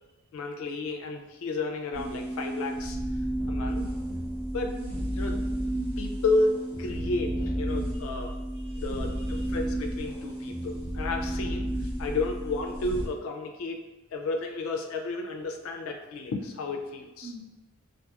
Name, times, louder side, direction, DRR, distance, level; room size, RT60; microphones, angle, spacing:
voice 1, 0.3-3.0 3.5-3.9 4.5-4.8 5.2-5.5 6.0-8.3 8.7-13.8 14.1-17.3, left 3 dB, 80° left, 4 dB, 0.4 m, -32 dB
sound 1, 1.9-13.1, right 1 dB, 75° right, 1.1 m, -32 dB
voice 2, 7.9-9.5 17.2-17.4, right 2 dB, 55° right, -3 dB, 0.5 m, -48 dB
2.8 x 2.5 x 2.3 m, 1.1 s
head